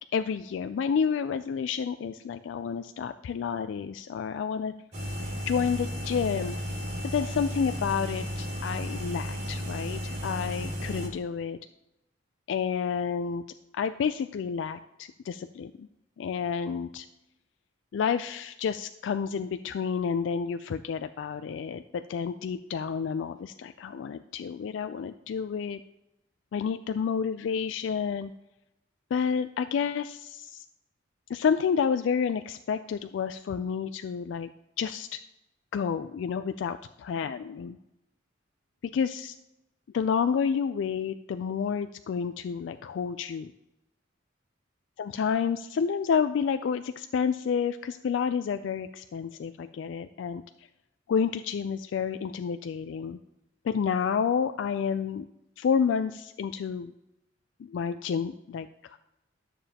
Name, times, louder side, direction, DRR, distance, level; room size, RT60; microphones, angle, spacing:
voice 1, 0.1-4.7 5.5-6.8 7.1-11.6 12.5-13.4 13.7-15.9 16.2-17.1 17.9-25.8 26.5-28.3 29.1-30.6 31.3-34.5 34.8-35.2 35.7-37.8 38.9-39.3 39.9-43.5 45.0-50.4 51.1-53.2 53.6-55.3 55.6-56.9 57.6-59.0, left 6 dB, 70° left, 10 dB, 0.3 m, -30 dB
sound 1, 4.9-11.1, equal, 60° right, 2.5 m, -34 dB
12.5 x 6.9 x 2.8 m, 0.89 s
head